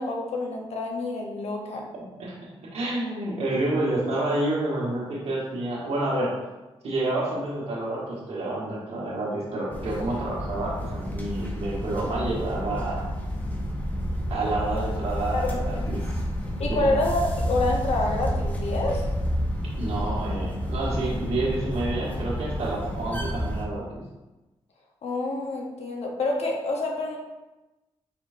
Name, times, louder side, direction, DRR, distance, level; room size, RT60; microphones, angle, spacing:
voice 1, 0.0-1.9 15.3-16.0 16.6-19.1 25.0-27.2, left 2 dB, 75° left, 1 dB, 0.9 m, -28 dB
voice 2, 2.7-6.3 6.8-13.1 14.3-16.0 16.7-17.0 19.8-24.0, right 2 dB, 75° right, -6 dB, 1.3 m, -29 dB
sound 1, 9.7-23.6, equal, 15° left, 0.9 m, -30 dB
4.6 x 4.4 x 2.6 m, 1.1 s
cardioid pair, 70°, 11 cm